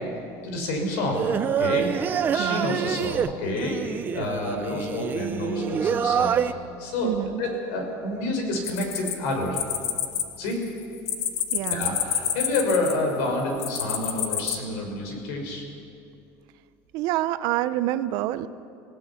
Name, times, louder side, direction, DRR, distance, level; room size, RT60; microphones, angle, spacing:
voice 1, 0.4-1.2 1.6-1.9 2.3-3.8 4.1-6.4 6.8-9.6 10.4-10.6 11.7-15.6, left 2 dB, 85° left, 2 dB, 6.0 m, -28 dB
Singing, 1.1-6.5, right 8 dB, 25° right, 0.6 m, -26 dB
voice 2, 7.0-7.4 11.5-12.0 16.9-18.5, right 14 dB, 60° right, 14 dB, 0.8 m, -27 dB
sound 1, 8.7-10.2 10.5-13.1 13.6-14.6, left 9 dB, 50° left, 1.4 m, -28 dB
27.0 x 18.0 x 5.8 m, 2.5 s
cardioid pair, 160°, 7 cm